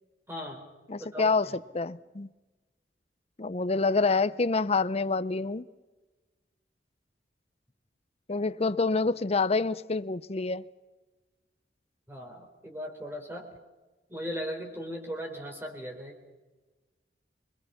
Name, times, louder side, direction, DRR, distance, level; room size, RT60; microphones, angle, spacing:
voice 1, 0.3-0.7 1.0-1.6 12.1-13.5 14.1-16.2, equal, 15° right, 4.3 m, -38 dB
voice 2, 0.9-2.3 3.4-5.6 8.3-10.6, left 3 dB, 35° left, 0.7 m, -27 dB
26.0 x 22.5 x 5.8 m
head